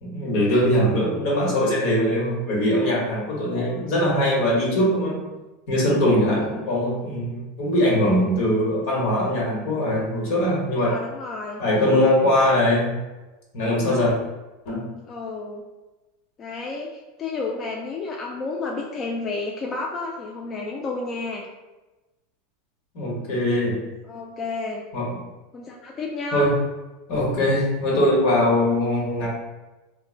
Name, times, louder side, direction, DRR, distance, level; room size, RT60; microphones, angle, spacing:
voice 1, 0.0-5.3 5.7-11.0 11.6-13.0 13.5-14.1 14.6-14.9 22.9-23.8 24.9-25.2 26.3-26.6 27.1-29.3, left 1 dB, 65° left, -4 dB, 1.0 m, -21 dB
voice 2, 3.3-3.9 6.0-6.7 10.7-11.6 15.1-15.6 16.4-21.5 24.0-24.8 25.5-26.5, left 3 dB, 30° left, -2 dB, 0.3 m, -31 dB
3.0 x 2.1 x 2.4 m, 1.1 s
supercardioid pair, 120°, 0 cm